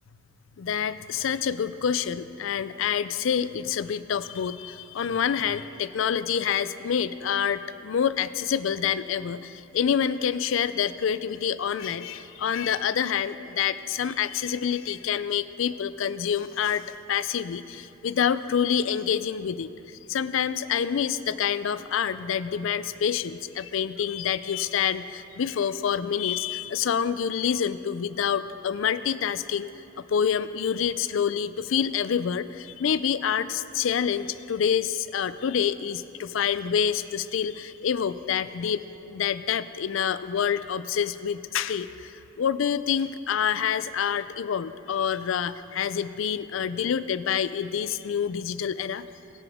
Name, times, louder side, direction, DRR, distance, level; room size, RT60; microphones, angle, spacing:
voice 1, 0.6-29.7 30.0-49.1, left 8 dB, 75° left, 14 dB, 0.4 m, -27 dB
19.0 x 6.8 x 3.5 m, 2.8 s
head